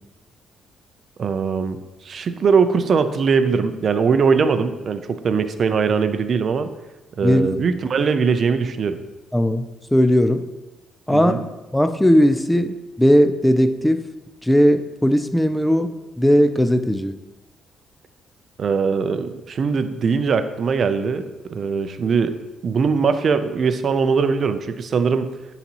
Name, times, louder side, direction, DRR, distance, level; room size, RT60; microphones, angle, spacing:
voice 1, 1.2-1.8 2.0-6.7 7.2-9.0 11.1-11.5 18.6-22.4 22.6-25.3, right 5 dB, 50° right, 10 dB, 0.5 m, -21 dB
voice 2, 9.3-9.7 9.9-10.4 11.1-11.3 11.7-14.0 14.4-15.9 16.2-17.2, equal, 5° left, 9 dB, 0.4 m, -17 dB
10.0 x 4.0 x 2.9 m, 1.1 s
cardioid pair, 90°, 0 cm